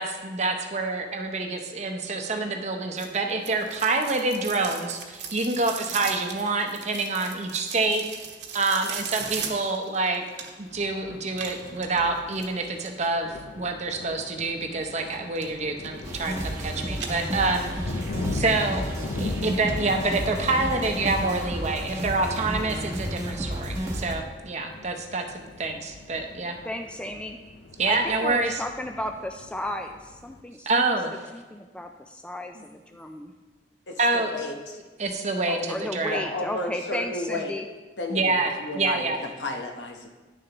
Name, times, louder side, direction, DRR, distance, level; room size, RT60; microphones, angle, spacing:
voice 1, 0.0-8.1 8.5-10.2 10.6-17.9 18.3-18.8 19.2-26.6 27.8-28.6 30.7-31.3 32.6-32.7 34.0-34.3 35.0-36.3 38.1-39.2, right 3 dB, 40° right, 4 dB, 0.8 m, -27 dB
sound 1, 3.0-10.8 11.3-13.1 15.0-15.5 15.8-16.6 16.9-17.8 18.2-18.3 18.9-19.0 19.3-19.4 19.7-19.8 20.1-20.2, right 6 dB, 70° right, 1.0 m, -38 dB
Thunder, 10.7-30.4, left 3 dB, 65° left, 0.5 m, -40 dB
sound 2, 16.0-24.1, equal, 15° right, 1.0 m, -32 dB
voice 2, 26.6-27.4 27.9-31.0 31.3-33.3 35.7-37.7, left 1 dB, 5° left, 5 dB, 0.3 m, -34 dB
voice 3, 33.9-34.8 35.5-35.6 36.1-37.5 38.0-40.1, left 2 dB, 85° left, 2 dB, 1.0 m, -33 dB
10.0 x 6.6 x 3.0 m, 1.3 s
head